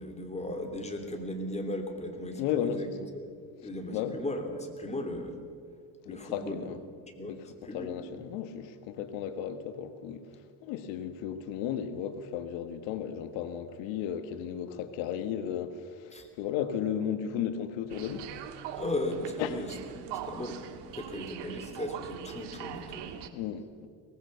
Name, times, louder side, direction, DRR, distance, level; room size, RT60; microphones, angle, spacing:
voice 1, 0.0-2.9 3.1-5.4 6.1-6.6 7.1-7.3 7.6-7.9 16.1-16.3 18.8-23.3, left 1 dB, 15° left, 3.3 m, -37 dB
voice 2, 2.3-2.8 3.9-4.2 6.0-6.8 7.3-7.5 7.7-10.3 10.6-18.3 19.4-19.6 23.3-23.9, left 9 dB, 90° left, 1.5 m, -34 dB
Domodedovo Airport, 17.9-23.3, right 10 dB, 70° right, 1.8 m, -42 dB
23.0 x 19.0 x 6.8 m
cardioid pair, 110°, 44 cm